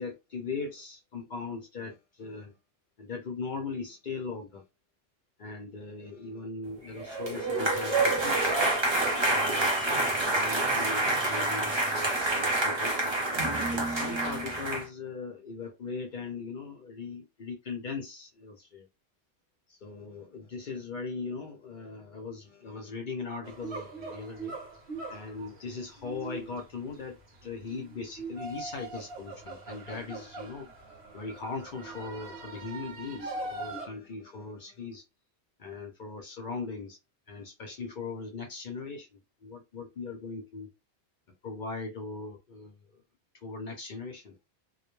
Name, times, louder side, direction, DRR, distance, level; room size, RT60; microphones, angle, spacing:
voice 1, 0.0-2.6 3.0-4.6 5.4-8.8 9.0-9.7 10.1-11.8 12.2-13.1 13.7-18.9 19.7-24.6 25.1-30.7 31.1-35.0 35.6-37.0 37.3-40.7 41.4-43.0 43.4-44.4, left 4 dB, 55° left, 0.6 m, -39 dB
sound 1, 7.0-14.8, right 2 dB, 30° right, 0.6 m, -27 dB
sound 2, 23.4-33.9, right 3 dB, 70° right, 1.0 m, -41 dB
2.3 x 2.1 x 3.0 m
omnidirectional pair, 1.1 m